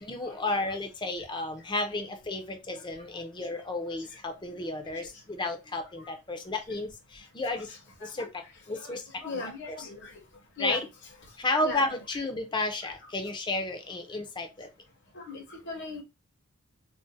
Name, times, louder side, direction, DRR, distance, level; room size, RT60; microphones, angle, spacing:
voice 1, 0.0-7.7 8.0-8.3 8.7-9.0 9.3-9.9 10.6-10.9 11.4-14.7, left 2 dB, 20° left, 5 dB, 0.5 m, -32 dB
voice 2, 8.7-10.2 10.6-10.8 11.6-12.0 15.1-16.0, left 3 dB, 55° left, 1 dB, 0.8 m, -38 dB
2.5 x 2.0 x 3.8 m, 0.25 s
head